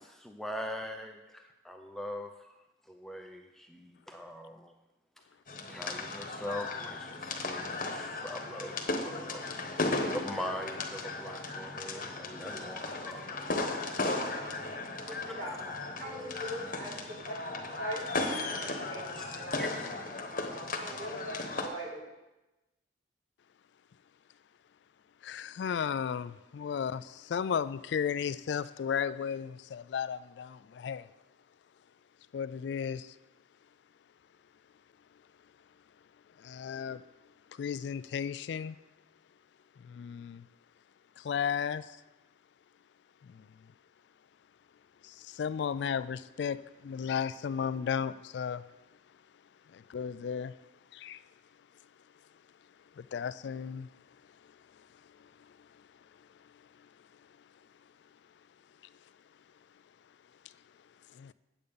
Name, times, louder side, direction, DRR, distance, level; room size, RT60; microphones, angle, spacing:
voice 1, 0.0-2.5 2.9-4.7 5.7-8.8 9.0-9.5 10.1-13.4 15.1-15.2 19.2-19.3 19.6-19.7, left 1 dB, ahead, 0.4 m, -42 dB
sound 1, 5.5-21.7, left 2 dB, 45° left, 1.1 m, -36 dB
voice 2, 14.7-19.6 20.8-22.0, equal, 60° right, 3.7 m, -42 dB
voice 3, 25.2-31.1 32.3-33.2 36.4-37.0 37.5-38.8 39.8-40.5 41.2-42.0 43.2-43.5 45.0-48.6 49.7-50.6 50.9-51.2 53.0-53.9 54.4-54.5 55.2-55.8 56.5-56.7 61.1-61.3, left 7 dB, 65° left, 0.3 m, -35 dB
8.8 x 7.9 x 5.2 m
head